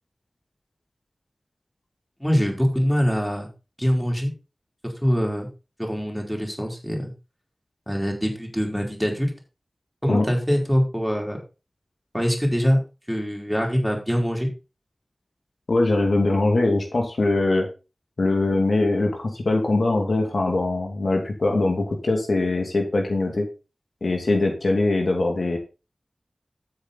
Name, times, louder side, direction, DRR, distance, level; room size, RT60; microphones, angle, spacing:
voice 1, 2.2-3.5 3.8-4.3 4.8-5.5 5.8-7.1 7.9-9.3 10.0-11.4 12.1-12.8 13.1-14.5, equal, ahead, 1 dB, 4.5 m, -23 dB
voice 2, 15.7-17.7 18.2-23.5 24.0-25.6, left 2 dB, 80° left, 3 dB, 2.5 m, -22 dB
13.0 x 7.9 x 4.2 m, 0.31 s
wide cardioid pair, 50°, 0 cm